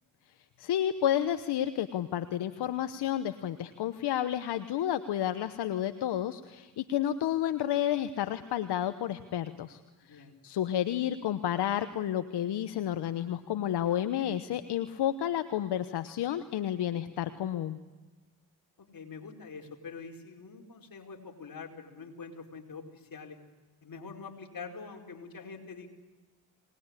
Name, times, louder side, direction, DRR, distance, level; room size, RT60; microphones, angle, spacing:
voice 1, 0.6-9.8 10.1-17.8, left 11 dB, 85° left, 10 dB, 1.1 m, -31 dB
voice 2, 10.0-10.4 18.8-23.4 23.8-25.9, left 5 dB, 60° left, 2 dB, 5.0 m, -45 dB
25.0 x 20.5 x 9.9 m, 1.2 s
supercardioid pair, 50°, 39 cm